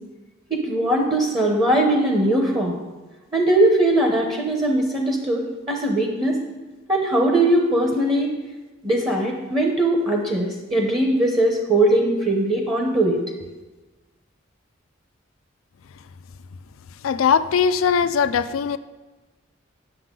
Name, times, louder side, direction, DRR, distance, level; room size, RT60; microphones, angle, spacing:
voice 1, 0.5-2.8 3.3-6.4 6.9-8.3 8.8-13.2, right 1 dB, 25° right, 0.9 m, -20 dB
voice 2, 17.0-18.8, left 6 dB, 85° left, 0.4 m, -20 dB
10.0 x 6.7 x 3.8 m
head